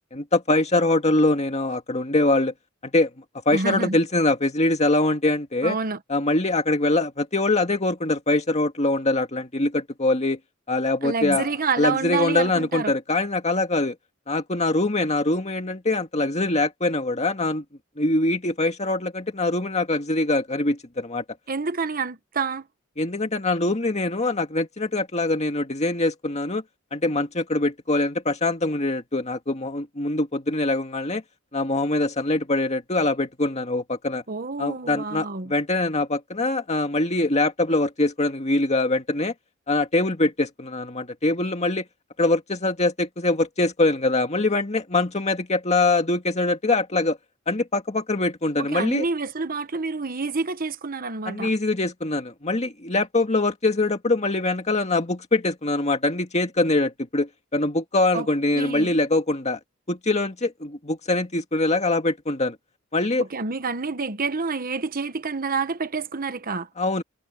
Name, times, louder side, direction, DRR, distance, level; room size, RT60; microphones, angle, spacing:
voice 1, 0.1-2.5 2.8-3.1 3.5-5.8 6.1-10.4 10.7-14.0 14.3-17.6 18.0-21.2 23.0-26.6 26.9-31.2 31.5-34.2 34.6-39.3 39.7-41.8 42.2-47.2 47.5-49.0 51.3-59.6 59.9-62.6 62.9-63.3 66.8-67.0, left 2 dB, 35° left, 2.1 m, -23 dB
voice 2, 3.5-4.0 5.6-6.0 11.0-12.9 21.5-22.7 34.3-35.5 48.6-51.5 58.1-58.3 58.5-58.9 63.2-66.7, right 4 dB, 45° right, 1.1 m, -28 dB
head